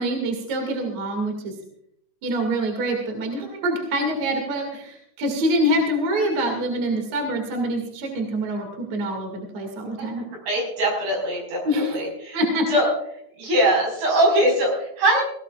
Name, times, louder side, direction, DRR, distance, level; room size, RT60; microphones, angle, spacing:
voice 1, 0.0-1.5 2.2-10.2 11.6-12.0 12.3-12.7, right 1 dB, 50° right, 3 dB, 3.2 m, -25 dB
voice 2, 10.5-11.6 11.9-12.4 12.7-12.9 13.4-15.2, right 1 dB, 75° right, 0 dB, 7.2 m, -21 dB
19.0 x 17.5 x 2.4 m, 0.73 s
omnidirectional pair, 4.5 m